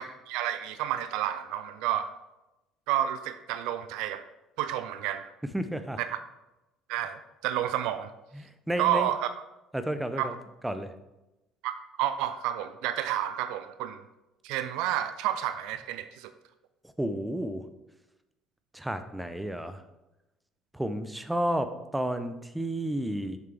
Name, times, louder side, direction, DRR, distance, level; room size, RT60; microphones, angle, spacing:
voice 1, 0.0-2.1 2.9-4.2 4.6-5.3 6.0-6.1 6.9-8.1 8.8-9.3 10.2-10.3 11.6-14.0 14.4-16.3, right 11 dB, 60° right, 10 dB, 0.4 m, -30 dB
voice 2, 5.5-6.0 8.3-9.1 9.7-10.3 10.6-10.9 17.0-17.6 18.7-19.8 20.7-23.4, right 1 dB, 5° right, 9 dB, 0.7 m, -31 dB
6.8 x 6.7 x 3.4 m, 0.97 s
figure-of-eight pair, 55°, 0 cm